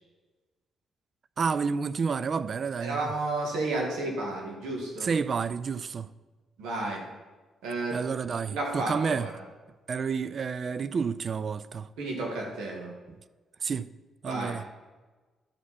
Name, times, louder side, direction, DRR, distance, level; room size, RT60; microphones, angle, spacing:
voice 1, 1.4-3.1 5.0-6.1 7.9-9.3 9.9-11.9 13.6-13.9 14.2-14.6, right 5 dB, 50° right, 0.4 m, -30 dB
voice 2, 2.8-5.1 6.6-7.0 7.6-8.0 8.5-9.3 12.0-12.9 14.3-14.6, right 2 dB, 85° right, 1.8 m, -32 dB
12.5 x 5.1 x 4.2 m
supercardioid pair, 55°, 0 cm